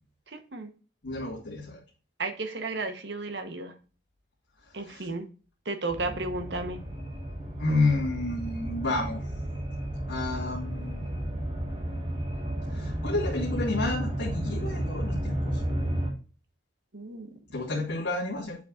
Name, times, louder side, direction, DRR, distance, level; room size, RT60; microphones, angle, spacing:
voice 1, 0.3-0.7 2.2-3.7 4.7-5.2 5.6-6.8 16.9-17.3, right 3 dB, 65° right, 7 dB, 1.1 m, -33 dB
voice 2, 1.0-1.8 4.8-5.1 7.6-9.2 10.1-11.1 12.7-15.6 17.5-18.6, left 2 dB, 80° left, -4 dB, 2.0 m, -30 dB
sound 1, 5.9-16.1, right 1 dB, 30° right, 1.6 m, -32 dB
8.0 x 7.0 x 2.5 m, 0.37 s
head